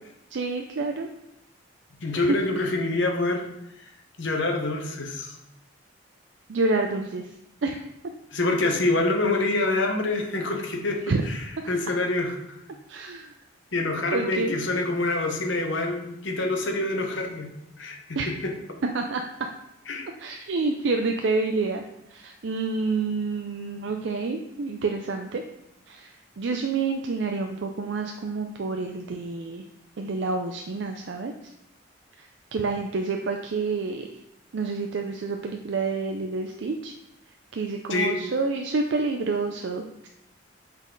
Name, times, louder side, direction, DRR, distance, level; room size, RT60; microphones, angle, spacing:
voice 1, 0.3-1.1 2.2-2.4 6.5-7.3 7.6-7.8 11.1-11.2 11.6-11.7 12.9-13.3 14.1-14.6 18.1-18.3 18.8-19.5 20.2-21.8 22.1-25.4 25.9-29.7 30.0-31.3 32.2-32.3 32.5-34.1 34.5-36.9 37.5-40.1, right 3 dB, 65° right, 3 dB, 0.4 m, -28 dB
voice 2, 2.0-3.4 4.2-5.4 8.3-11.4 11.7-12.3 13.7-17.5 17.8-18.5 19.9-20.1 37.9-38.1, left 2 dB, 70° left, 3 dB, 1.1 m, -26 dB
7.1 x 4.0 x 3.9 m, 0.85 s
head